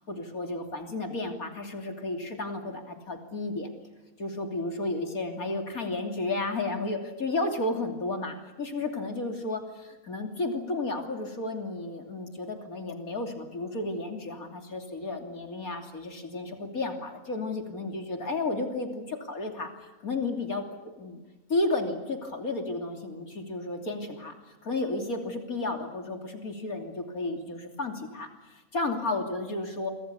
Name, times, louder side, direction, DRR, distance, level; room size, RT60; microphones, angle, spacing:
voice 1, 0.1-3.7 4.2-20.6 20.9-21.2 21.5-29.9, left 2 dB, 65° left, 4 dB, 3.5 m, -32 dB
29.0 x 24.5 x 7.0 m, 1.1 s
omnidirectional pair, 1.6 m